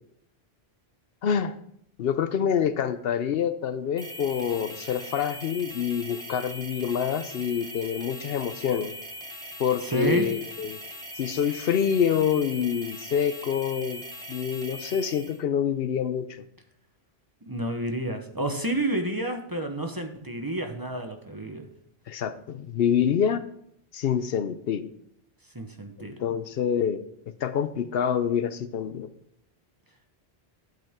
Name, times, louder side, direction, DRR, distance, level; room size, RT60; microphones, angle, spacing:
voice 1, 1.2-1.6 2.0-8.9 9.6-10.8 11.2-14.0 14.3-16.4 22.1-23.4 23.9-24.9 26.0-27.0 27.4-29.1, left 8 dB, 75° left, 12 dB, 0.8 m, -26 dB
sound 1, 4.0-15.4, equal, 5° left, 1.2 m, -40 dB
voice 2, 9.8-10.3 17.5-21.7 25.5-26.2, right 1 dB, 20° right, 4 dB, 0.9 m, -29 dB
12.0 x 8.1 x 3.6 m, 0.71 s
omnidirectional pair, 1.0 m